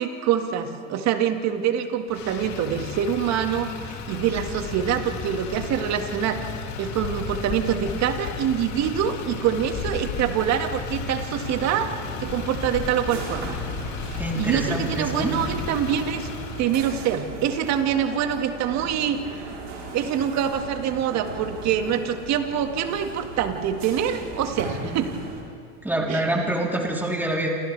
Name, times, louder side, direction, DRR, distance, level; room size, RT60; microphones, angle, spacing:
voice 1, 0.0-6.4 6.8-11.9 12.2-13.5 14.0-16.3 16.6-19.2 19.9-25.2 26.1-26.2, right 9 dB, 45° right, 6 dB, 2.1 m, -25 dB
Motor vehicle (road), 2.1-16.7, left 5 dB, 50° left, 3.0 m, -34 dB
sound 1, 11.4-25.4, right 3 dB, 85° right, 5.6 m, -38 dB
voice 2, 14.2-15.3 25.8-27.5, right 1 dB, 5° right, -2 dB, 3.7 m, -26 dB
28.5 x 28.0 x 3.5 m, 2.4 s
hypercardioid pair, 100°, 36 cm